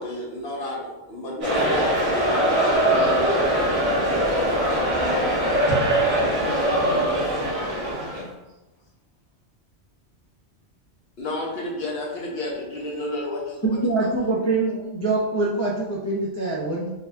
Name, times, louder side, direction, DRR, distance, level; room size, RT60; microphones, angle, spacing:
voice 1, 0.0-3.7 4.1-5.6 11.2-14.1, left 1 dB, 60° left, -2 dB, 1.0 m, -31 dB
sound 1, 1.4-8.2, right 1 dB, 85° right, 1.8 m, -22 dB
voice 2, 5.9-7.5 7.8-8.3, equal, 65° right, -7 dB, 1.7 m, -32 dB
voice 3, 13.6-16.9, right 2 dB, 20° left, -6 dB, 0.4 m, -24 dB
4.8 x 2.6 x 2.2 m, 1.0 s
omnidirectional pair, 1.2 m